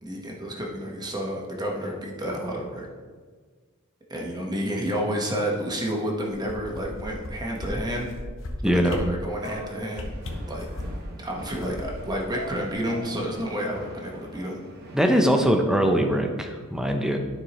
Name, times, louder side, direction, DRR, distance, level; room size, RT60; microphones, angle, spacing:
voice 1, 0.0-2.9 4.1-8.1 8.6-10.2 10.5-10.7 11.2-14.6, equal, 20° right, -1 dB, 1.2 m, -30 dB
sound 1, 6.2-7.3 7.6-7.7 8.0-8.5 8.9-9.0 9.4-9.6 9.9-11.0 11.4-13.0 13.4-13.5, left 2 dB, 65° left, 1.0 m, -37 dB
voice 2, 8.6-8.9 14.9-17.2, equal, 5° right, 4 dB, 0.6 m, -22 dB
sound 2, 9.4-15.2, right 1 dB, 50° right, 1.0 m, -42 dB
12.5 x 4.5 x 3.1 m, 1.5 s
head